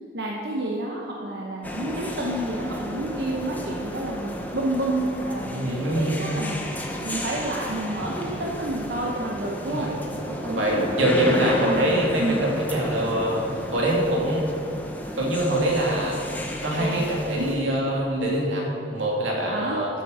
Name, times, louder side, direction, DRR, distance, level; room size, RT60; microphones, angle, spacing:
voice 1, 0.1-9.9 10.2-12.4 16.8-17.0 17.4-17.6 19.5-19.8, right 1 dB, 60° right, -3 dB, 1.0 m, -30 dB
sound 1, 1.6-17.5, left 1 dB, 10° left, 0.9 m, -33 dB
voice 2, 5.5-6.2 9.7-9.9 10.5-13.4 13.7-14.5 15.1-16.2 16.6-19.9, right 1 dB, 85° right, -3 dB, 2.7 m, -24 dB
12.5 x 7.1 x 5.6 m, 2.5 s
head